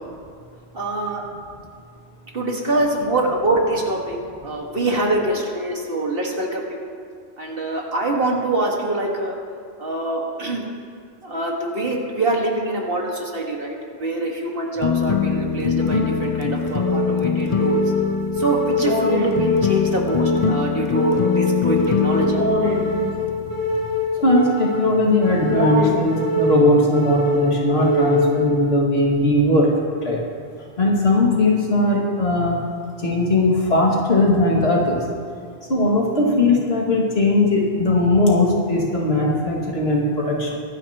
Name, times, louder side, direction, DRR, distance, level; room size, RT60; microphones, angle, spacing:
voice 1, 0.7-1.2 2.3-4.2 4.4-6.9 7.4-9.3 9.8-10.6 11.2-17.8 18.4-22.4, right 2 dB, 60° right, -1 dB, 2.0 m, -24 dB
sound 1, 14.8-24.1, left 7 dB, 40° left, 0.6 m, -23 dB
sound 2, 15.8-28.8, left 1 dB, 25° right, 2.3 m, -23 dB
voice 2, 24.2-29.7 30.0-30.2 30.8-32.6 33.0-35.0 35.7-40.6, left 1 dB, 70° left, -3 dB, 2.4 m, -19 dB
23.0 x 9.8 x 3.0 m, 2.2 s
omnidirectional pair, 1.1 m